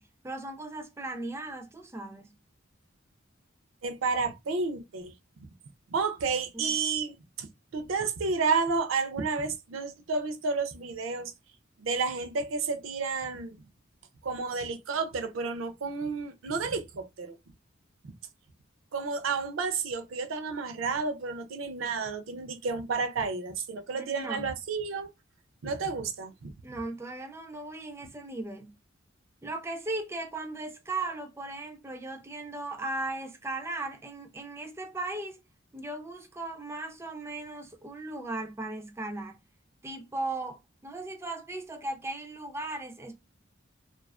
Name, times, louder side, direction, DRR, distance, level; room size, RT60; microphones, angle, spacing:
voice 1, 0.0-2.3 6.5-6.8 24.0-24.5 26.6-28.7 29.4-35.4 35.7-39.4 39.8-43.2, right 2 dB, 15° right, 0.4 m, -37 dB
voice 2, 3.8-5.1 5.9-7.5 7.7-11.3 11.8-13.6 14.2-17.4 18.9-25.1 25.6-26.5, right 4 dB, 85° right, 0.5 m, -31 dB
2.3 x 2.3 x 2.3 m
head